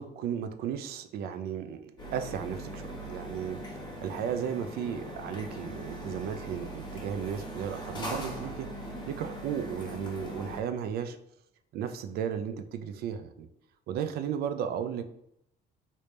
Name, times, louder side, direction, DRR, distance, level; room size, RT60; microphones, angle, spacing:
voice 1, 0.0-3.7 4.0-11.2 11.7-13.5 13.9-15.0, right 8 dB, 65° right, 9 dB, 0.4 m, -35 dB
sound 1, 2.0-10.6, equal, 25° left, 1.3 m, -40 dB
3.2 x 2.7 x 3.2 m, 0.77 s
cardioid pair, 110°, 17 cm